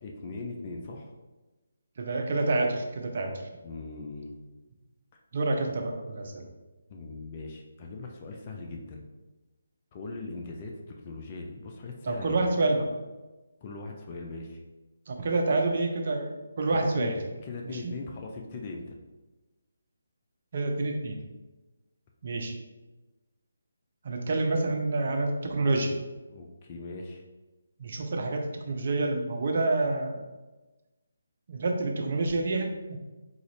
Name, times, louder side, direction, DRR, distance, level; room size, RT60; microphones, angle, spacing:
voice 1, 0.0-1.1 3.6-4.3 6.9-9.0 9.9-12.4 13.6-14.6 16.7-17.1 17.4-19.0 26.3-27.2, left 3 dB, 30° left, 1 dB, 0.4 m, -40 dB
voice 2, 2.0-3.3 5.3-6.4 12.0-12.9 15.1-17.2 17.6-17.9 20.5-21.2 22.2-22.6 24.0-26.0 27.8-30.2 31.5-33.0, right 2 dB, 50° right, 2 dB, 0.6 m, -28 dB
3.8 x 2.4 x 3.3 m, 1.2 s
figure-of-eight pair, 150°, 0 cm